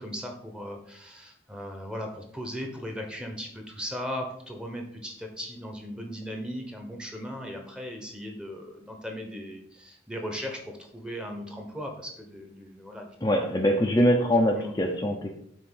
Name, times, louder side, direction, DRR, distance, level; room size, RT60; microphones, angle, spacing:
voice 1, 0.0-13.1 14.6-14.7, equal, 5° right, 3 dB, 1.1 m, -37 dB
voice 2, 13.2-15.3, equal, 20° left, 0 dB, 0.6 m, -23 dB
6.0 x 4.4 x 6.4 m, 0.69 s
head